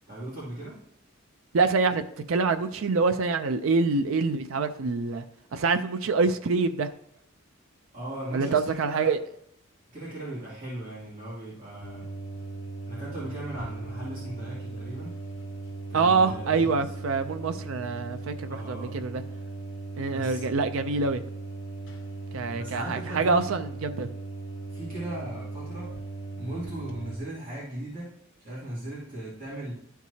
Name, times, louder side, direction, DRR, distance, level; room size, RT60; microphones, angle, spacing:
voice 1, 0.1-0.8 7.9-9.1 9.9-12.1 12.9-15.2 15.9-16.8 18.5-19.0 20.0-20.5 22.5-23.5 24.6-26.0 26.4-28.1 28.4-29.7, right 1 dB, 40° right, -9 dB, 2.5 m, -38 dB
voice 2, 1.5-2.0 2.3-5.2 5.5-6.9 8.3-9.2 15.9-19.2 20.0-21.2 22.3-24.1, right 4 dB, 80° right, 9 dB, 0.5 m, -25 dB
sound 1, 11.8-27.2, right 3 dB, 70° left, 1.2 m, -38 dB
12.0 x 4.6 x 2.8 m, 0.72 s
head